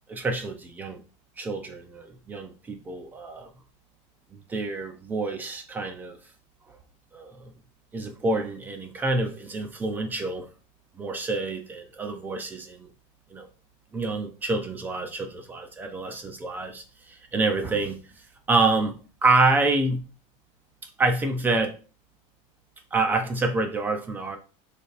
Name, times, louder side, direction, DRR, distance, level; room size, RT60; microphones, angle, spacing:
voice 1, 0.1-1.0 1.4-3.5 4.5-6.2 7.1-7.5 7.9-10.5 11.0-12.9 13.3-13.5 13.9-18.1 18.5-19.0 19.2-20.0 21.0-21.7 22.9-24.4, right 3 dB, 10° right, 0.4 m, -27 dB
6.4 x 3.4 x 2.4 m
cardioid pair, 175°, 16 cm